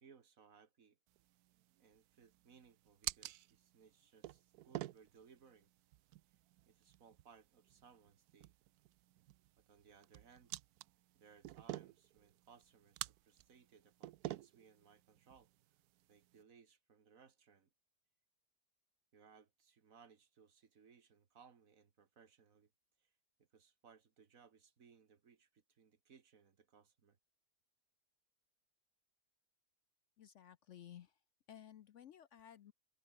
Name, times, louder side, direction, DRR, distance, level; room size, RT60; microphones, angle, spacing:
voice 1, 0.0-1.0 1.8-5.7 6.7-8.5 9.6-10.5 11.1-15.5 16.1-17.7 19.1-22.7 23.0-23.1 23.4-27.2, right 6 dB, 60° right, 1.9 m, -65 dB
sound 1, 1.1-16.4, right 14 dB, 75° right, 1.1 m, -51 dB
voice 2, 30.2-31.2 31.5-32.7, left 10 dB, 60° left, 0.9 m, -56 dB
omnidirectional pair, 1.6 m